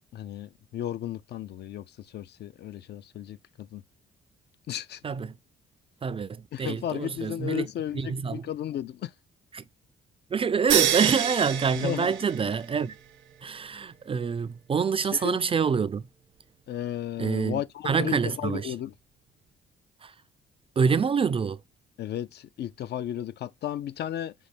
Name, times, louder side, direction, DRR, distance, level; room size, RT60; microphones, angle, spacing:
voice 1, 0.1-3.8 4.7-5.0 6.5-9.1 11.8-12.2 15.0-15.4 16.7-18.9 22.0-24.3, left 11 dB, 55° left, 0.4 m, -34 dB
voice 2, 5.0-5.4 6.0-7.7 7.9-8.5 9.5-9.6 10.3-13.0 13.4-16.1 17.2-18.7 20.0-20.1 20.8-21.6, right 6 dB, 30° right, 0.3 m, -26 dB
sound 1, 10.7-12.8, right 11 dB, 80° right, 0.9 m, -27 dB
5.4 x 2.8 x 3.2 m
cardioid pair, 90°, 20 cm